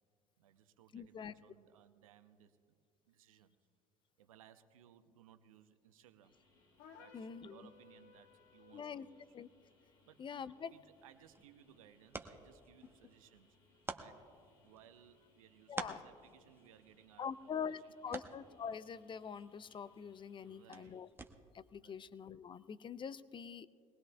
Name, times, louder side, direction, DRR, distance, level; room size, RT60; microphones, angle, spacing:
voice 1, 0.4-2.8 3.1-3.6 4.2-6.3 7.0-9.2 10.0-10.2 10.7-13.6 13.9-14.3 14.6-17.8 18.1-18.2 20.4-21.0 21.8-22.0, right 10 dB, 80° right, 10 dB, 0.7 m, -63 dB
voice 2, 0.9-1.3 7.1-7.7 8.7-9.1 9.3-9.5 10.2-10.7 15.7-16.0 17.2-21.1 21.5-23.7, left 7 dB, 30° left, 18 dB, 0.5 m, -44 dB
sound 1, 6.2-21.0, left 3 dB, 80° left, 2.9 m, -72 dB
sound 2, 6.8-9.0, left 6 dB, 65° left, 1.4 m, -60 dB
sound 3, 11.0-21.7, right 3 dB, 15° right, 1.0 m, -51 dB
22.5 x 19.5 x 2.3 m, 2.3 s
hypercardioid pair, 65°, 17 cm